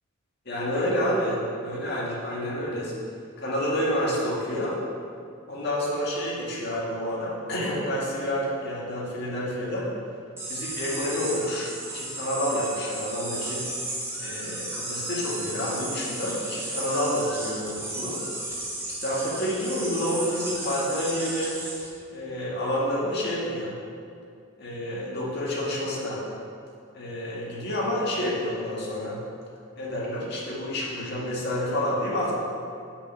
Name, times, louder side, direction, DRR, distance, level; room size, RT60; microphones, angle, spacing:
voice 1, 0.5-2.9 3.4-4.8 5.5-9.9 10.5-13.7 14.2-18.2 19.0-21.6 22.1-23.7 24.6-26.2 26.9-29.2 29.8-32.3, equal, 50° left, -6 dB, 2.1 m, -29 dB
sound 1, 10.4-21.9, right 1 dB, 10° right, 1.4 m, -34 dB
6.5 x 5.7 x 7.1 m, 2.4 s
head